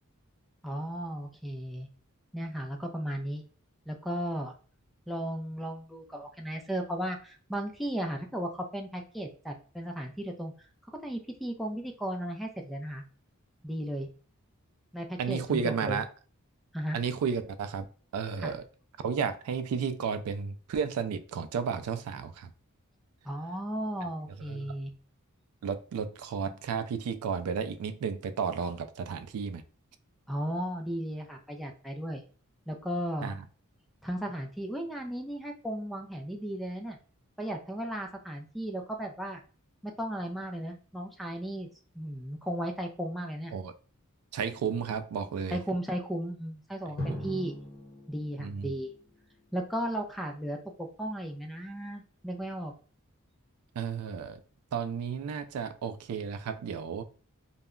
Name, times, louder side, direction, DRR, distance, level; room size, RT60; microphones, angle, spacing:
voice 1, 0.6-1.9 2.3-3.4 3.9-4.5 5.1-10.5 11.0-13.0 13.6-14.1 14.9-16.0 16.7-17.0 18.4-18.6 23.3-24.9 30.3-32.2 32.7-33.3 34.0-37.0 37.4-39.4 39.8-41.7 42.0-43.5 45.5-47.5 48.1-48.9 49.5-52.7, right 1 dB, ahead, 0.3 m, -35 dB
voice 2, 15.2-16.1 16.9-17.9 18.1-18.6 19.0-22.5 24.4-24.7 25.6-29.6 33.2-33.4 43.5-43.7 44.3-45.6 47.1-47.3 48.4-48.7 53.8-54.4 54.7-57.0, right 6 dB, 80° right, 0.3 m, -33 dB
Drum, 47.0-49.6, left 1 dB, 45° left, 0.9 m, -40 dB
2.2 x 2.0 x 3.5 m
head